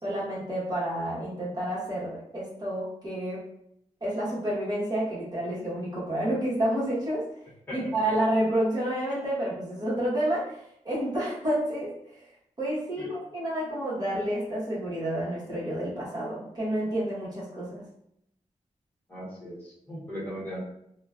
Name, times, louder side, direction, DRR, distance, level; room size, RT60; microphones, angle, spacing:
voice 1, 0.0-3.4 4.0-7.2 7.7-12.3 12.6-17.8, right 1 dB, 30° right, -7 dB, 1.3 m, -29 dB
voice 2, 19.1-20.7, equal, 15° left, -8 dB, 1.1 m, -38 dB
3.0 x 2.2 x 2.4 m, 0.74 s
wide cardioid pair, 155°, 13 cm